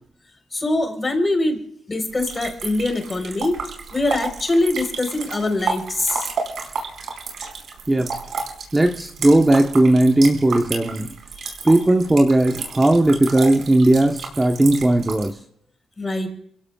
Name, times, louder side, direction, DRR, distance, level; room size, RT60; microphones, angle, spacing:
voice 1, 0.5-1.6 1.9-3.6 3.9-6.3 11.4-11.6 16.0-16.4, left 2 dB, 25° left, 4 dB, 4.0 m, -23 dB
sound 1, 2.1-15.3, right 5 dB, 70° right, 4.9 m, -31 dB
voice 2, 8.7-11.1 11.6-15.3, right 1 dB, 15° right, 3 dB, 1.1 m, -17 dB
29.5 x 16.0 x 2.4 m, 0.68 s
cardioid pair, 120°, 0 cm